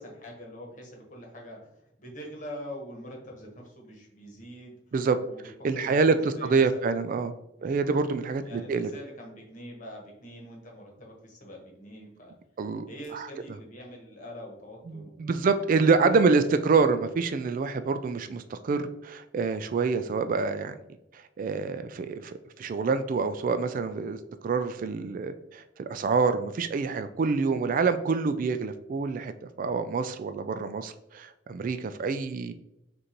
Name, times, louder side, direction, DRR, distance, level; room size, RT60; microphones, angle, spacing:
voice 1, 0.0-4.8 5.2-7.0 7.6-7.7 8.4-12.3 12.9-15.3 16.2-16.3, equal, 45° left, 0 dB, 1.2 m, -44 dB
voice 2, 5.6-7.3 7.6-8.4 8.7-8.9 12.6-12.8 13.1-13.3 14.9-20.8 21.1-24.2 24.4-32.5, right 4 dB, 45° right, 10 dB, 0.3 m, -26 dB
6.4 x 2.6 x 2.9 m, 0.85 s
head